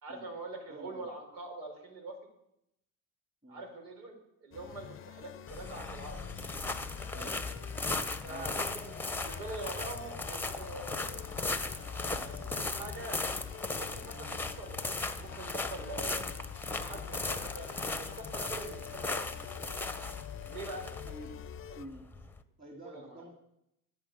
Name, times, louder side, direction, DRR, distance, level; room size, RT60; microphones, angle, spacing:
voice 1, 0.0-2.2 3.5-4.1 4.4-6.2 7.1-7.3 8.2-11.2 12.0-13.2 13.8-16.3 16.8-19.2 20.5-20.9 22.8-23.2, right 2 dB, 75° right, 3 dB, 5.3 m, -44 dB
voice 2, 0.7-1.1 3.4-3.7 7.1-7.4 8.2-8.7 12.1-12.3 21.0-21.4 21.7-22.1 22.6-23.3, right 1 dB, 15° right, 2 dB, 2.6 m, -49 dB
sound 1, 4.5-21.9, left 10 dB, 30° left, 0.7 m, -47 dB
Walking on Gravel, 5.5-22.4, left 3 dB, 5° left, 1.0 m, -37 dB
10.5 x 10.0 x 8.7 m, 0.83 s
supercardioid pair, 95°, 46 cm